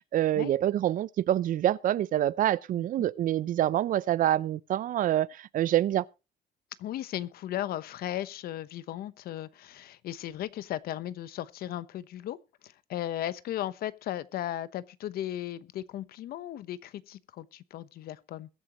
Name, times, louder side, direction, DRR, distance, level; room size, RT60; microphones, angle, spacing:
voice 1, 0.0-6.0, right 12 dB, 60° right, 0.6 m, -26 dB
voice 2, 2.8-3.1 6.8-12.4 12.6-18.5, left 12 dB, 75° left, 1.0 m, -36 dB
22.0 x 8.9 x 3.0 m
cardioid pair, 150°, 16 cm